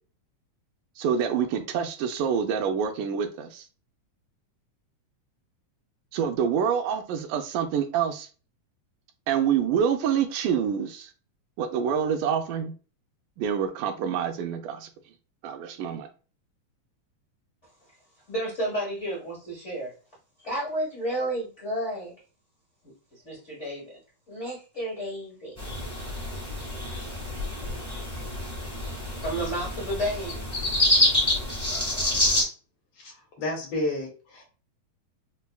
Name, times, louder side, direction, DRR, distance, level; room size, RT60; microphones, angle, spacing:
voice 1, 1.0-3.6 6.1-8.3 9.3-11.1 11.6-12.7 13.4-14.9 15.4-16.1, right 7 dB, 85° right, 2.1 m, -26 dB
voice 2, 18.3-19.9 20.4-22.1 23.1-23.9 24.3-25.6 27.7-27.8 28.4-28.5 29.2-30.4, right 1 dB, 85° left, 0.6 m, -31 dB
sound 1, 25.6-32.4, left 1 dB, 5° left, 0.6 m, -27 dB
voice 3, 33.4-34.4, left 1 dB, 70° left, 1.6 m, -30 dB
5.4 x 2.2 x 2.2 m
omnidirectional pair, 3.5 m